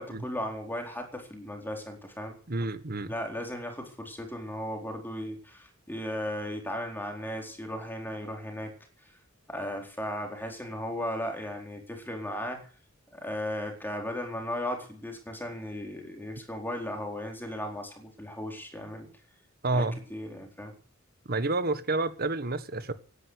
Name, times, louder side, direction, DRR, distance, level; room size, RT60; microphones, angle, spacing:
voice 1, 0.0-2.4 3.1-8.7 9.5-12.6 13.1-19.1 19.7-20.7, left 1 dB, 10° left, 4.2 m, -36 dB
voice 2, 2.5-3.1 19.6-20.0 21.3-22.9, right 2 dB, 50° right, 1.5 m, -29 dB
16.5 x 10.5 x 8.2 m
head